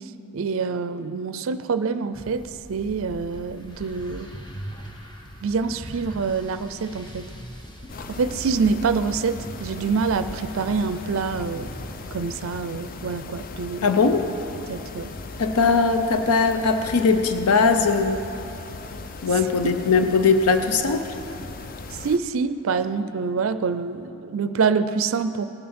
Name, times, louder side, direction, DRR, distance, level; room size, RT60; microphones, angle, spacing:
voice 1, 0.3-2.4 2.7-4.3 5.4-7.3 8.1-11.7 12.1-13.9 14.7-15.1 19.6-19.8 21.9-25.4, right 5 dB, 65° right, 12 dB, 0.4 m, -26 dB
sound 1, 2.1-12.0, equal, 20° left, 0.9 m, -41 dB
sound 2, 7.9-22.2, left 3 dB, 40° left, 0.4 m, -38 dB
voice 2, 13.8-14.3 15.4-18.2 19.2-21.1, left 4 dB, 90° left, 8 dB, 0.6 m, -20 dB
18.5 x 9.5 x 4.3 m, 2.9 s
head